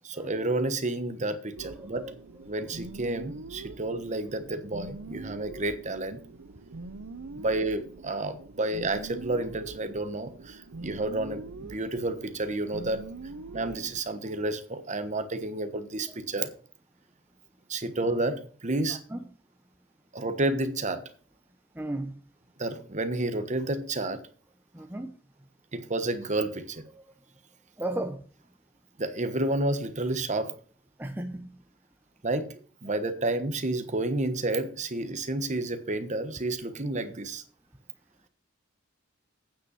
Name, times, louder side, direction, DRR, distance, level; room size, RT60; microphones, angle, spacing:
voice 1, 0.0-2.1 2.5-6.2 7.4-13.0 13.5-16.5 17.7-19.0 20.1-21.0 22.6-24.2 25.7-26.8 29.0-30.5 32.2-37.4, right 2 dB, 35° right, 10 dB, 1.2 m, -30 dB
voice 2, 1.6-2.1 2.5-2.6 19.1-19.2 21.7-22.2 24.7-25.2 26.9-27.0 27.8-28.2 31.0-31.6, right 1 dB, 10° right, 5 dB, 0.7 m, -35 dB
sound 1, 1.6-14.0, right 3 dB, 80° right, 0.7 m, -43 dB
9.0 x 5.5 x 7.0 m, 0.43 s
head